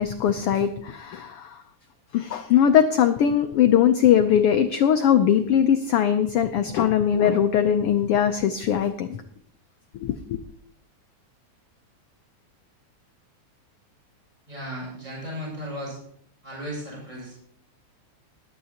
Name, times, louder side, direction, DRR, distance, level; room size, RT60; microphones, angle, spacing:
voice 1, 0.0-1.6 2.1-9.2 9.9-10.4, left 9 dB, 85° left, 7 dB, 1.2 m, -21 dB
voice 2, 14.5-16.0 16.4-17.4, equal, 10° right, -4 dB, 6.8 m, -35 dB
20.0 x 11.5 x 2.9 m, 0.64 s
omnidirectional pair, 3.5 m